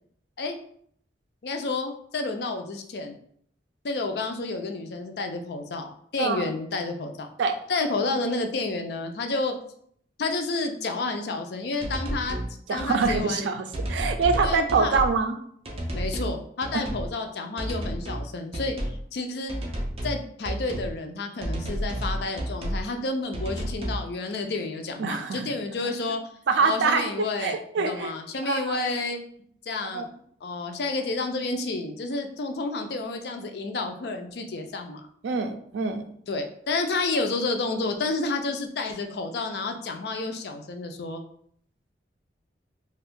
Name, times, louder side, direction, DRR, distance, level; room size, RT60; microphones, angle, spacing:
voice 1, 1.4-3.2 3.8-7.3 7.7-9.5 10.2-12.4 12.7-13.5 14.4-15.0 15.9-18.7 19.1-19.5 20.0-26.2 26.6-29.2 29.7-30.0 30.4-35.0 36.3-41.2, left 3 dB, 60° left, 5 dB, 0.4 m, -30 dB
sound 1, 11.8-12.5 12.8-13.2 13.7-15.2 15.7-16.3 16.6-17.1 17.6-18.3 18.5-19.0 19.5-20.2 20.4-20.9 21.4-22.8 23.3-24.0, right 1 dB, 30° right, 0.5 m, -31 dB
voice 2, 12.7-15.3 16.7-16.8 25.0-25.5 26.5-28.1 28.4-28.8 29.9-30.0 35.2-36.0, right 4 dB, 85° right, 8 dB, 0.4 m, -25 dB
2.5 x 2.3 x 3.5 m, 0.64 s
head